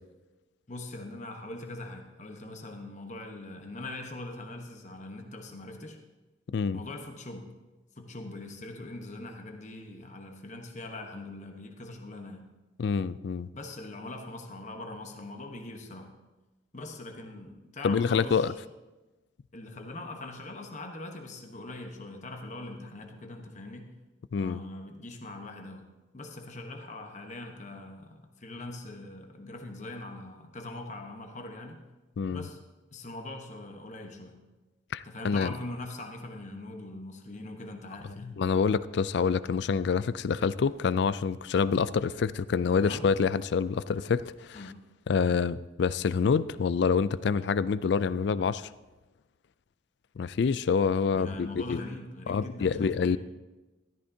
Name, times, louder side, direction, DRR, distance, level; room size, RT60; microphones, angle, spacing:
voice 1, 0.7-6.0 6.7-7.5 8.0-12.5 13.5-16.1 16.7-18.5 19.5-23.9 24.3-25.9 26.1-31.8 32.3-32.6 32.9-34.4 35.0-38.3 42.7-43.1 44.5-44.8 51.1-53.2, left 2 dB, 35° left, 3 dB, 1.1 m, -42 dB
voice 2, 6.5-6.8 12.8-13.5 17.8-18.5 24.3-24.6 32.2-32.5 34.9-35.5 38.2-44.6 45.1-48.7 50.2-51.8 52.3-53.2, left 5 dB, 60° left, 17 dB, 0.3 m, -27 dB
13.5 x 13.0 x 2.8 m, 1.1 s
head